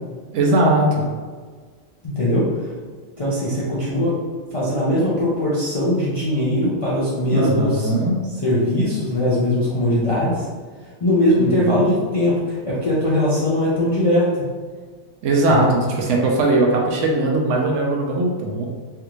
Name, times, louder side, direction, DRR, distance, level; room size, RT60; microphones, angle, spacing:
voice 1, 0.3-1.1 7.3-8.2 11.4-11.8 15.2-18.7, right 2 dB, 70° right, 0 dB, 0.9 m, -19 dB
voice 2, 2.0-2.5 3.2-4.2 4.5-7.9 8.4-10.5 11.0-14.4 15.5-15.7, left 1 dB, 40° left, -9 dB, 0.4 m, -20 dB
3.4 x 2.5 x 2.9 m, 1.5 s
omnidirectional pair, 1.4 m